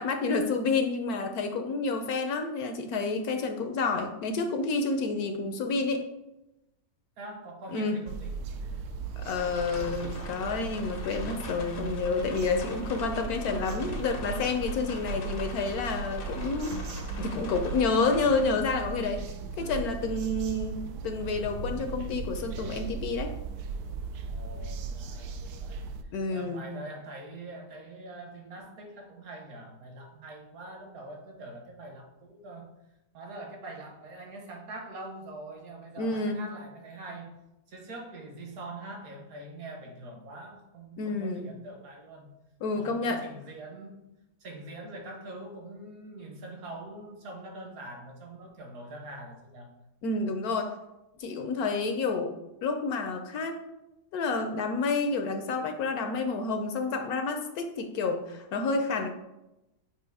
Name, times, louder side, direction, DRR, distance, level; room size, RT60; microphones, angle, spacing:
voice 1, 0.0-6.0 7.7-8.0 9.2-16.7 17.2-19.2 19.6-23.3 26.1-26.7 36.0-36.4 41.0-41.5 42.6-43.3 50.0-50.8 51.2-52.3 52.6-53.6 54.1-59.1, left 3 dB, 65° left, 5 dB, 1.0 m, -29 dB
voice 2, 7.2-8.8 24.3-32.7 33.1-37.4 37.7-42.3 42.7-44.1 44.4-49.7, right 2 dB, 55° right, 2 dB, 1.5 m, -44 dB
sound 1, 8.1-26.0, right 4 dB, 75° right, 1.1 m, -37 dB
sound 2, 9.4-18.5, left 3 dB, 50° left, 0.6 m, -43 dB
7.8 x 2.6 x 4.7 m, 0.93 s
omnidirectional pair, 1.9 m